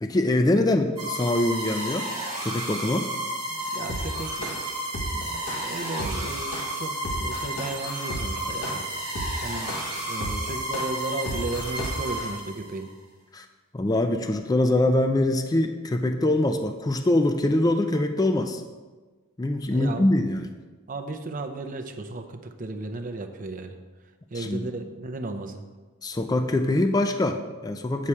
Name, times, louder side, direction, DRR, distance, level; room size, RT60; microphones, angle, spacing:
voice 1, 0.0-2.1 2.4-3.1 13.3-13.5 13.7-18.6 19.4-20.5 24.4-24.7 26.0-28.1, left 1 dB, 15° left, 7 dB, 0.3 m, -23 dB
sound 1, 1.0-12.8, right 1 dB, 20° right, 2.3 m, -32 dB
voice 2, 3.5-4.6 5.1-12.9 19.7-20.1 20.9-23.8 24.3-25.6, right 2 dB, 35° right, 5 dB, 0.5 m, -35 dB
sound 2, 3.9-12.3, equal, 80° left, 1.2 m, -34 dB
8.3 x 4.9 x 4.4 m, 1.3 s
head